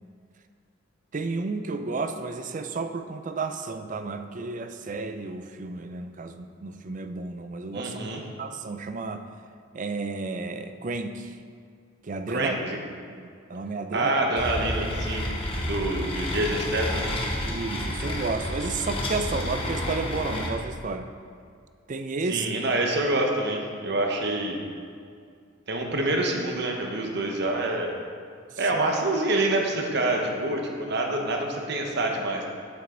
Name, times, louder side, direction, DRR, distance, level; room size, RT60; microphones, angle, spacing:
voice 1, 1.1-8.0 8.4-9.2 9.7-11.3 12.0-12.5 13.1-14.1 17.4-21.1 21.9-22.5, right 3 dB, 40° right, 8 dB, 0.5 m, -32 dB
voice 2, 7.7-8.2 12.3-12.8 13.9-15.3 15.6-17.1 22.3-24.6 25.7-27.9 28.6-32.5, right 2 dB, 60° right, 1 dB, 1.1 m, -26 dB
sound 1, 14.4-20.5, left 1 dB, 30° left, 1.0 m, -30 dB
8.6 x 7.4 x 3.9 m, 2.2 s
head